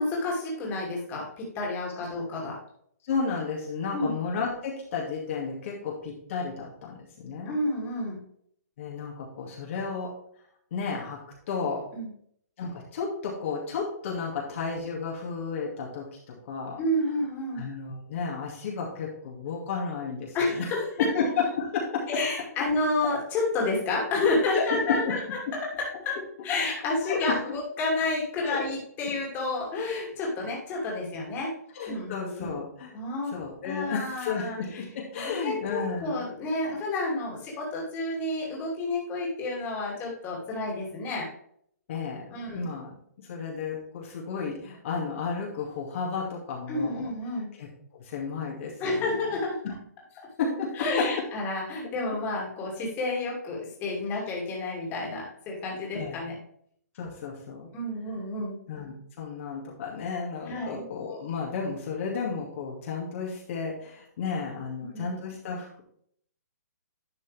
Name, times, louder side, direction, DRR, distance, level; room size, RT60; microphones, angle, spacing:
voice 1, 0.0-2.6 3.9-4.1 7.5-8.2 11.9-12.1 16.8-17.6 20.3-20.9 22.1-25.4 26.0-26.1 26.4-31.5 31.9-32.6 32.9-33.3 33.6-34.8 35.1-41.3 42.3-42.6 46.7-47.5 48.8-49.6 50.8-56.3 57.7-58.6 60.5-60.8 64.9-65.1, left 2 dB, 20° left, -3 dB, 2.8 m, -30 dB
voice 2, 3.0-7.6 8.8-10.1 10.7-11.2 11.5-11.8 12.6-16.8 17.5-20.7 21.0-22.2 24.5-25.1 27.0-27.6 28.4-28.6 31.7-32.9 33.3-36.2 41.9-42.9 43.3-47.1 47.6-49.2 49.6-49.7 50.4-51.2 54.1-54.2 55.9-56.2 56.9-57.7 58.7-65.8, left 5 dB, 50° left, -3 dB, 2.4 m, -32 dB
11.0 x 5.5 x 3.5 m, 0.65 s
hypercardioid pair, 155°, 9 cm